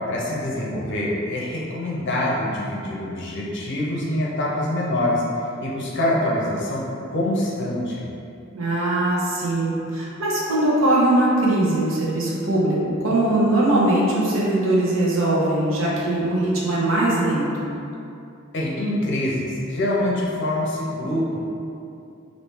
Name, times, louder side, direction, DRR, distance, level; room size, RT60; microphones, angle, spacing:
voice 1, 0.1-5.2 5.6-6.8 7.1-8.1 18.5-21.4, left 1 dB, 65° left, -4 dB, 0.7 m, -25 dB
voice 2, 8.5-17.5, right 1 dB, 75° right, -5 dB, 0.8 m, -21 dB
3.1 x 2.7 x 3.2 m, 2.7 s
head